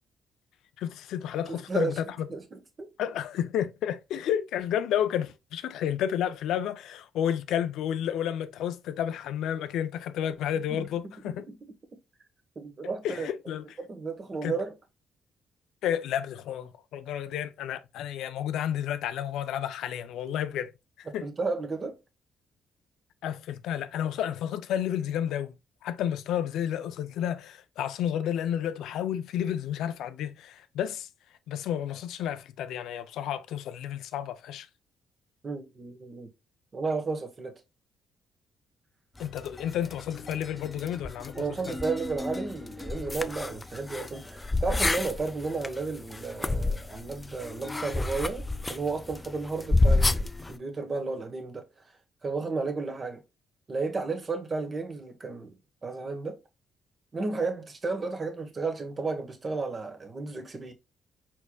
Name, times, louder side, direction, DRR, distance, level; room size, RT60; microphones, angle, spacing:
voice 1, 0.8-2.3 3.0-11.4 13.0-13.6 14.4-14.5 15.8-20.7 21.0-21.3 23.2-25.5 25.8-31.1 31.5-34.7 39.2-41.4, left 10 dB, 85° left, 0.4 m, -31 dB
voice 2, 1.5-2.0 2.3-2.9 10.7-10.9 12.6-13.3 13.8-14.7 21.1-22.0 35.4-36.3 36.7-37.5 41.4-51.6 52.2-53.2 53.7-55.5 55.8-56.4 57.1-60.7, right 4 dB, 35° right, 1.1 m, -33 dB
sound 1, 39.2-50.6, left 2 dB, 20° left, 0.4 m, -30 dB
4.6 x 4.4 x 2.2 m
cardioid pair, 90°, 0 cm